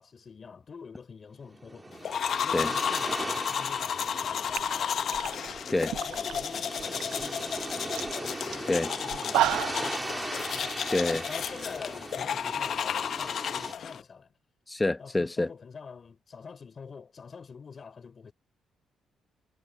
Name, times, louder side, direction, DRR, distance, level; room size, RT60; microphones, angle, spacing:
voice 1, 0.0-5.3 6.0-14.3 15.0-18.3, left 5 dB, 40° left, 3.7 m, -46 dB
sound 1, 1.5-13.7, right 2 dB, 20° right, 3.2 m, -39 dB
sound 2, 2.0-14.0, left 8 dB, 60° left, 0.9 m, -32 dB
sound 3, 4.2-4.3 4.5-6.5 6.8-7.3 7.6-7.7 7.9-8.1 8.5-8.6 9.1-9.9, right 14 dB, 90° right, 0.4 m, -31 dB
voice 2, 10.9-11.3 14.7-15.5, left 2 dB, 15° left, 0.8 m, -27 dB
cardioid pair, 90°, 0 cm